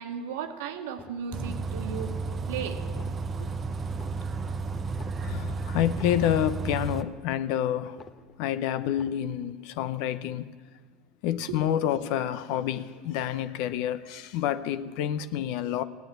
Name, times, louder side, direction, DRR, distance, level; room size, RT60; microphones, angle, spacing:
voice 1, 0.0-2.2 2.5-2.8 11.5-11.6, right 7 dB, 80° right, 1.4 m, -35 dB
sound 1, 0.8-1.6 1.9-2.5 2.8-3.6 3.9-4.6 4.8-7.6 7.9-8.6 8.8-9.6 9.9-10.0, left 5 dB, 35° left, 1.1 m, -51 dB
Bus, 1.3-7.0, right 4 dB, 30° right, 0.7 m, -33 dB
voice 2, 5.2-8.0 8.4-10.5 11.2-15.8, left 11 dB, 70° left, 0.8 m, -28 dB
16.5 x 9.3 x 9.1 m
hypercardioid pair, 95°, 0 cm